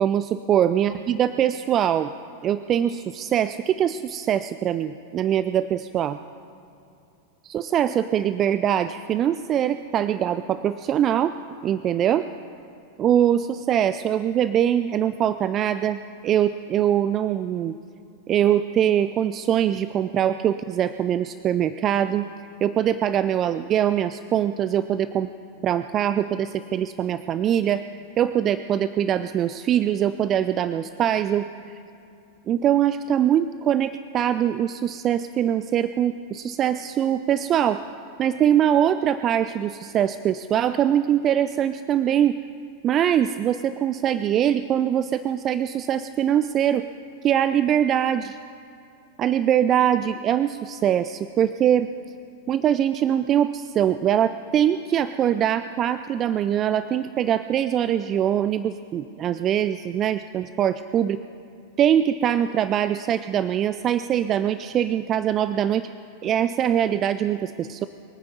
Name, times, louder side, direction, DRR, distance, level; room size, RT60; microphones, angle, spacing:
voice 1, 0.0-2.1 2.4-6.2 7.4-11.3 11.6-12.3 13.0-17.7 18.3-22.3 22.6-25.3 25.6-27.8 28.2-31.7 32.5-37.8 38.2-42.4 42.8-46.9 47.2-48.4 49.2-51.9 52.5-61.2 61.8-65.9 66.2-67.9, right 10 dB, 30° right, 13 dB, 0.4 m, -22 dB
24.0 x 9.6 x 5.4 m, 2.6 s
figure-of-eight pair, 90°, 0 cm